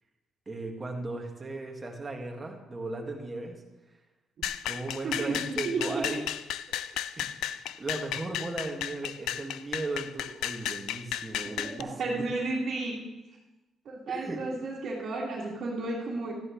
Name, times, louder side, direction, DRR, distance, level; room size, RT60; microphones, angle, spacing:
voice 1, 0.5-3.6 4.6-6.3 6.8-12.2 14.1-14.5, right 2 dB, 25° right, 1 dB, 1.9 m, -37 dB
sound 1, 4.4-11.8, left 11 dB, 85° left, 0.3 m, -34 dB
voice 2, 5.0-6.2 11.6-13.0 13.9-16.3, right 3 dB, 60° right, -7 dB, 2.2 m, -33 dB
13.5 x 10.5 x 3.2 m, 1.1 s
cardioid pair, 90°, 0 cm